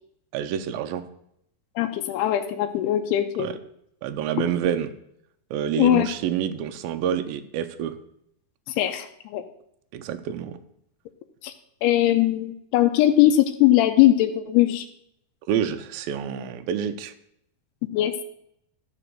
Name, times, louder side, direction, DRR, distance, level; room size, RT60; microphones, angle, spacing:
voice 1, 0.3-1.0 3.4-3.5 4.0-4.9 5.5-7.9 9.9-10.6 15.5-17.1, right 9 dB, 80° right, 8 dB, 2.2 m, -27 dB
voice 2, 1.8-3.5 4.4-4.5 5.8-6.1 8.7-9.4 11.4-11.5 11.8-14.9 17.9-18.2, left 13 dB, 85° left, 6 dB, 2.7 m, -20 dB
12.0 x 4.2 x 7.5 m, 0.74 s
omnidirectional pair, 4.6 m